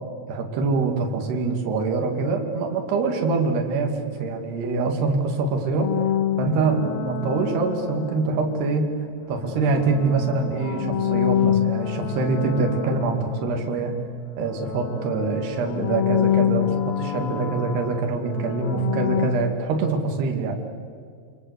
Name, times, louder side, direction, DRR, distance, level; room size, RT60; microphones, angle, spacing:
voice 1, 0.3-5.9 6.4-8.9 9.3-13.9 14.4-20.6, right 3 dB, 65° right, 3 dB, 4.3 m, -24 dB
sound 1, 5.8-8.7 9.4-14.2 14.4-19.3, left 10 dB, 65° left, 3.1 m, -27 dB
28.5 x 24.5 x 8.2 m, 2.1 s
omnidirectional pair, 5.2 m